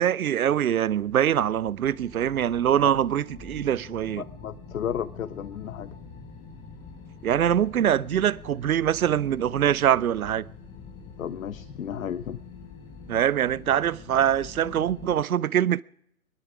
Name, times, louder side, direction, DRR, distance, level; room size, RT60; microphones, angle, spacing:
voice 1, 0.0-4.2 7.2-10.5 13.1-15.8, right 10 dB, 75° right, 0.6 m, -23 dB
sound 1, 0.7-15.2, left 4 dB, 10° left, 0.7 m, -45 dB
voice 2, 4.2-5.9 11.2-12.4, left 9 dB, 70° left, 0.7 m, -33 dB
23.0 x 11.5 x 4.8 m
figure-of-eight pair, 135°, 43 cm